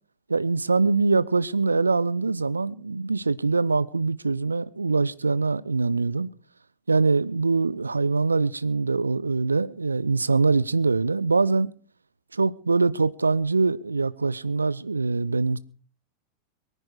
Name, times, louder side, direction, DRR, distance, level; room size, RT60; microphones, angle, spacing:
voice 1, 0.3-6.3 6.9-11.7 12.3-15.6, right 4 dB, 80° right, 0.7 m, -23 dB
23.0 x 10.0 x 4.7 m
figure-of-eight pair, 90°, 0 cm